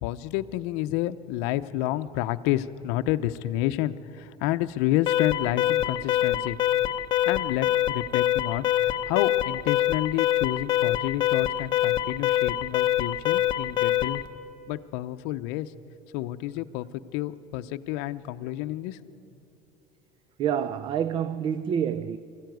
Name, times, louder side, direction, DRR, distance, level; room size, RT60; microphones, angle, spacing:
voice 1, 0.0-6.6 7.3-14.2 14.7-15.7 16.1-19.2, left 14 dB, 75° left, 0.7 m, -29 dB
Alarm, 5.1-14.3, left 12 dB, 35° left, 0.9 m, -25 dB
voice 2, 20.4-22.2, right 8 dB, 35° right, 0.5 m, -27 dB
24.0 x 14.5 x 9.3 m
cardioid pair, 150°, 13 cm